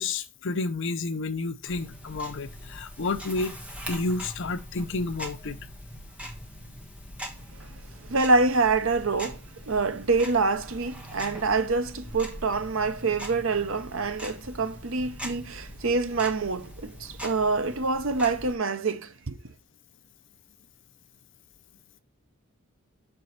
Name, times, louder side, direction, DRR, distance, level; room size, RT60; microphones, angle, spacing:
voice 1, 0.0-3.6 3.9-5.6, left 3 dB, 60° left, 0.7 m, -30 dB
Tick-tock, 1.7-18.5, equal, 5° right, 1.2 m, -42 dB
voice 2, 8.1-19.4, right 3 dB, 65° right, 0.8 m, -26 dB
6.2 x 4.5 x 5.8 m
head